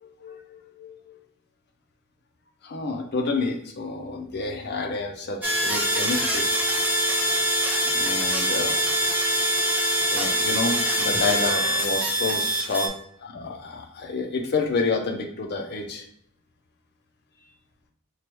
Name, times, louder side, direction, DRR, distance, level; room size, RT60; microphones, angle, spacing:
voice 1, 0.0-1.1 2.6-6.5 7.8-8.8 10.1-16.0, left 3 dB, 50° left, 4 dB, 0.5 m, -29 dB
sound 1, 5.4-12.9, equal, 5° right, 0.6 m, -24 dB
4.6 x 2.2 x 3.0 m, 0.66 s
head